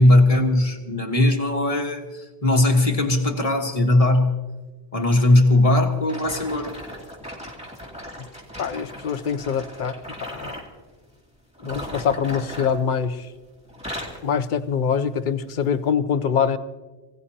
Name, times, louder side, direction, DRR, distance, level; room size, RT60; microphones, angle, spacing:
voice 1, 0.0-4.3 4.9-6.7, left 1 dB, 35° left, 2 dB, 1.6 m, -19 dB
sound 1, 6.1-10.7 11.5-13.3 13.6-14.3 14.9-15.1 15.7-15.8, equal, 5° right, 2.3 m, -37 dB
voice 2, 8.6-10.6 11.7-13.3 14.2-16.6, left 7 dB, 55° left, 12 dB, 0.8 m, -24 dB
25.0 x 16.5 x 2.9 m, 1.3 s
omnidirectional pair, 1.1 m